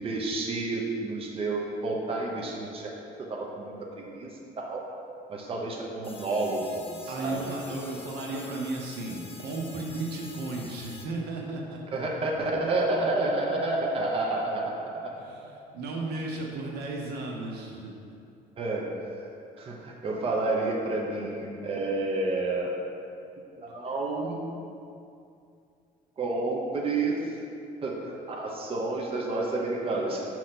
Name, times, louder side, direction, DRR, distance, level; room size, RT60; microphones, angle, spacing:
voice 1, 0.0-2.9 3.2-4.9 5.3-7.6 11.9-15.1 18.6-18.9 19.6-22.8 23.6-24.4 26.2-27.2 27.8-30.3, right 2 dB, 35° right, -1 dB, 0.8 m, -30 dB
sound 1, 6.0-11.0, left 3 dB, 35° left, 0.8 m, -47 dB
voice 2, 7.1-12.0 15.2-18.0, right 2 dB, 75° right, -1 dB, 1.0 m, -35 dB
6.5 x 3.0 x 5.8 m, 2.5 s
cardioid pair, 110°, 17 cm